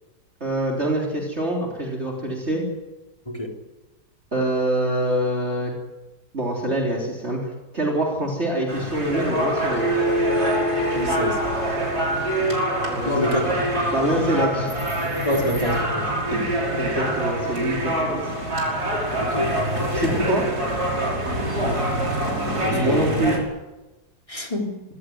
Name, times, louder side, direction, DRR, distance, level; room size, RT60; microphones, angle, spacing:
voice 1, 0.4-2.6 4.3-5.7 6.3-7.4 7.7-9.9 12.9-13.4 13.9-14.7 16.3-18.3 19.9-20.4 22.4-23.4, right 1 dB, 40° right, -2 dB, 4.1 m, -25 dB
sound 1, 8.7-23.4, right 1 dB, 70° right, 6.3 m, -25 dB
sound 2, 9.7-14.5, equal, 15° right, 7.6 m, -28 dB
voice 2, 10.9-11.4 13.0-13.6 15.3-16.1 19.2-19.6 20.1-20.4 21.5-21.8 22.6-23.2 24.3-24.8, left 1 dB, 20° left, 1 dB, 3.8 m, -26 dB
26.0 x 16.0 x 9.5 m, 1.1 s
omnidirectional pair, 1.7 m